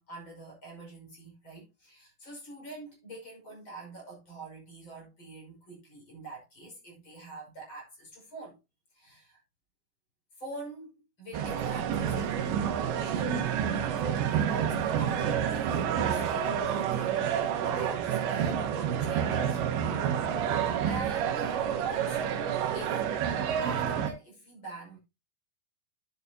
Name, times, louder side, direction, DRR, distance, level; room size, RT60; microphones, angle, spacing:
voice 1, 0.0-8.6 8.9-9.4 10.4-12.6 13.0-13.4 14.0-19.6 20.6-22.4 22.7-23.0 23.6-25.0, right 3 dB, 25° left, 6.2 m, -45 dB
sound 1, 11.3-24.1, right 8 dB, 80° right, 3.4 m, -29 dB
10.5 x 8.8 x 2.7 m
omnidirectional pair, 5.1 m